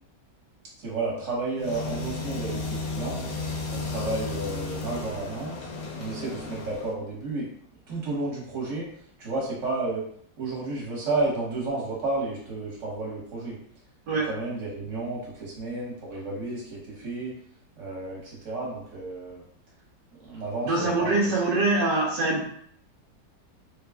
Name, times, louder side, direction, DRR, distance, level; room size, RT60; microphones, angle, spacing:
voice 1, 0.8-3.2 3.7-5.6 6.0-7.5 7.9-8.9 9.2-10.0 10.4-13.6 14.2-17.3 17.8-19.4 20.2-21.2, right 2 dB, 45° right, -4 dB, 1.6 m, -31 dB
sound 1, 1.6-6.9, left 3 dB, 65° left, 1.0 m, -33 dB
voice 2, 20.6-22.4, right 2 dB, 75° right, -4 dB, 1.5 m, -24 dB
4.0 x 2.4 x 3.5 m, 0.64 s
omnidirectional pair, 1.9 m